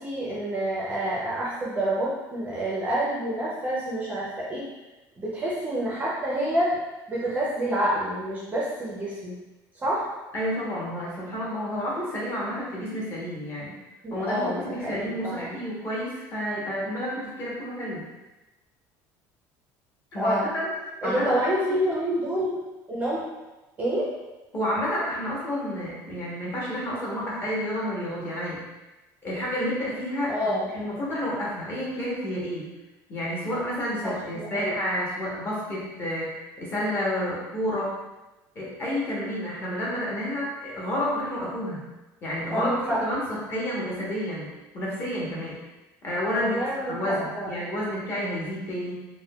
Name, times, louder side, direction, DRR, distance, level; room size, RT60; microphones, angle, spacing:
voice 1, 0.0-4.7 5.2-6.8 7.1-9.4 9.8-10.1 14.0-15.6 20.1-20.4 21.0-22.5 22.9-23.3 23.8-24.1 30.3-30.6 34.0-34.7 42.5-43.0 46.4-47.6, right 1 dB, 20° right, -6 dB, 0.4 m, -28 dB
voice 2, 10.3-13.7 14.1-18.1 20.1-20.7 21.0-21.8 24.5-28.6 29.2-32.7 33.1-37.9 38.5-41.8 42.2-42.7 43.0-44.5 44.7-45.6 46.0-46.6 46.9-49.0, equal, 30° left, -6 dB, 0.9 m, -30 dB
3.6 x 2.1 x 2.2 m, 1.1 s
cardioid pair, 165°, 8 cm